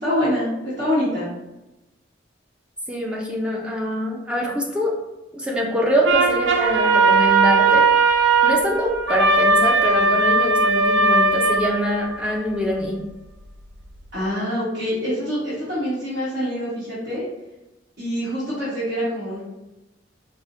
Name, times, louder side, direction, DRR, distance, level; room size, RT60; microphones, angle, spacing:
voice 1, 0.0-1.3 14.1-17.2 18.0-19.4, equal, 55° right, -13 dB, 1.4 m, -25 dB
voice 2, 2.9-5.0 5.3-13.0, equal, 5° right, -2 dB, 0.4 m, -24 dB
sound 1, 6.0-12.3, right 3 dB, 70° right, 0.4 m, -18 dB
4.8 x 2.1 x 2.6 m, 1.0 s
head